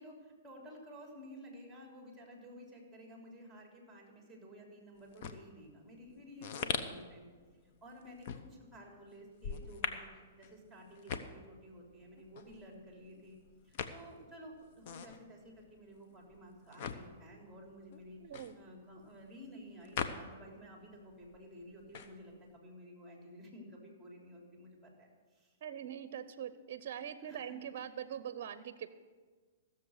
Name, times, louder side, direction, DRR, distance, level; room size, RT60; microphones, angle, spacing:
voice 1, 0.0-7.2 7.6-13.4 13.6-25.5 27.2-27.6, equal, ahead, 0 dB, 3.3 m, -53 dB
sound 1, 5.0-20.7 21.0-22.6, left 6 dB, 50° left, 0.9 m, -43 dB
voice 2, 18.2-18.6 25.6-28.9, right 9 dB, 55° right, 13 dB, 0.6 m, -43 dB
15.5 x 7.0 x 6.5 m, 1.5 s
hypercardioid pair, 140°, 0 cm